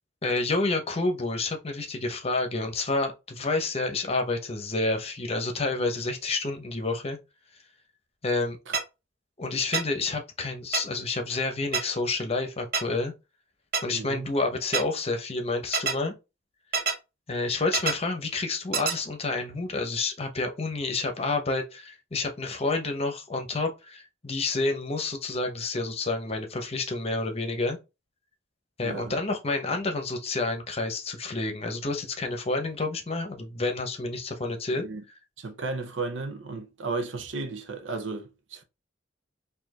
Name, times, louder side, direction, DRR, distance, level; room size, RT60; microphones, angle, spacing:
voice 1, 0.2-7.2 8.2-8.6 9.4-13.1 13.8-16.1 17.3-27.8 28.8-34.8, left 3 dB, 35° left, 0.9 m, -29 dB
sound 1, 8.7-8.8 9.7-9.8 10.7-10.8 11.7-11.8 12.7-12.8 13.7-13.8 14.7-14.8 15.7-15.9 16.7-16.9 17.7-17.9 18.7-18.9, right 5 dB, 50° right, 0.7 m, -25 dB
voice 2, 13.9-14.3 28.8-29.2 34.8-35.0 35.4-38.6, right 3 dB, 85° right, 0.8 m, -34 dB
4.4 x 2.8 x 2.9 m
head